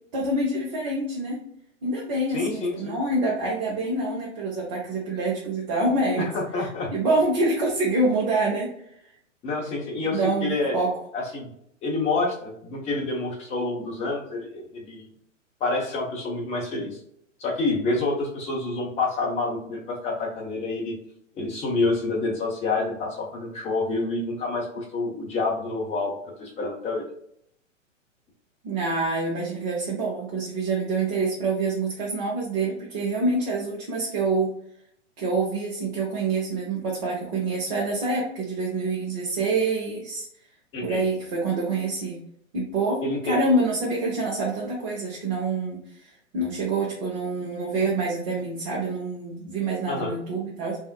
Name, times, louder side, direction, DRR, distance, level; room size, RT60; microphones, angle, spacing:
voice 1, 0.1-1.4 1.8-6.3 6.6-8.7 10.1-10.9 28.6-34.5 35.2-40.3 40.8-42.2 42.5-50.8, right 2 dB, 35° right, -4 dB, 0.8 m, -26 dB
voice 2, 2.3-3.0 6.2-6.9 9.4-10.8 11.1-11.5 11.8-15.1 15.6-17.0 17.4-21.0 21.3-27.0 40.7-41.0 43.0-43.4 49.9-50.2, left 3 dB, 15° left, -2 dB, 0.8 m, -28 dB
3.4 x 2.6 x 2.3 m, 0.70 s
figure-of-eight pair, 115°, 38 cm